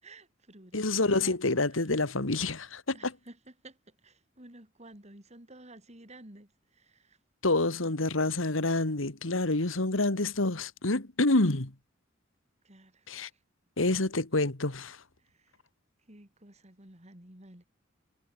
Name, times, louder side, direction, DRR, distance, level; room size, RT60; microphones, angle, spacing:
voice 1, 0.0-1.4 1.7-1.9 2.9-7.2 12.6-13.4 15.2-15.6 16.1-17.6, right 1 dB, 35° right, 4.3 m, -53 dB
voice 2, 0.7-3.1 7.4-11.7 13.1-13.3 13.8-15.0, left 2 dB, 80° left, 2.2 m, -27 dB
head